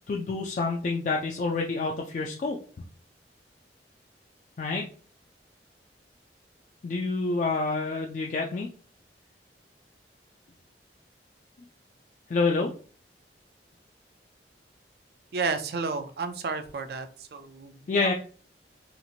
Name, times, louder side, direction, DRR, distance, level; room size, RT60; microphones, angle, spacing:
voice 1, 0.1-2.6 4.6-4.8 6.8-8.7 12.3-12.7 17.9-18.1, left 3 dB, 45° left, 0 dB, 0.3 m, -27 dB
voice 2, 15.3-17.1 17.3-18.1, right 4 dB, 60° right, 8 dB, 0.4 m, -32 dB
2.9 x 2.4 x 2.7 m, 0.41 s
head